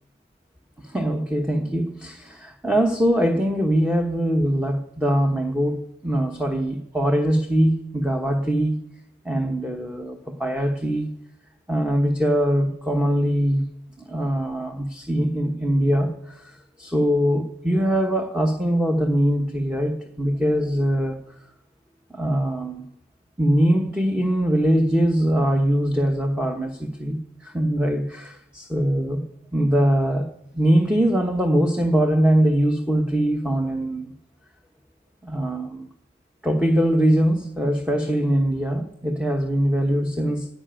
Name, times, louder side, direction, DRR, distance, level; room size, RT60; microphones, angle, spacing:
voice 1, 0.8-8.8 9.2-11.1 11.7-13.7 14.0-21.2 22.1-22.9 23.4-29.2 29.5-30.3 30.5-34.1 35.2-35.9 36.4-40.5, equal, 5° right, 3 dB, 1.0 m, -22 dB
12.0 x 10.5 x 9.0 m, 0.80 s
head